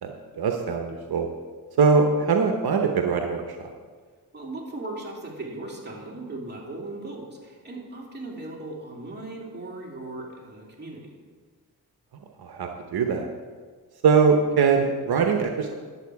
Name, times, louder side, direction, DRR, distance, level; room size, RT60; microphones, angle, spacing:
voice 1, 0.4-1.3 1.8-3.7 12.4-13.3 14.0-15.7, right 5 dB, 75° right, 4 dB, 0.9 m, -22 dB
voice 2, 4.3-11.2, right 2 dB, 25° right, -2 dB, 2.6 m, -38 dB
10.5 x 7.5 x 4.7 m, 1.5 s
cardioid pair, 70°, 38 cm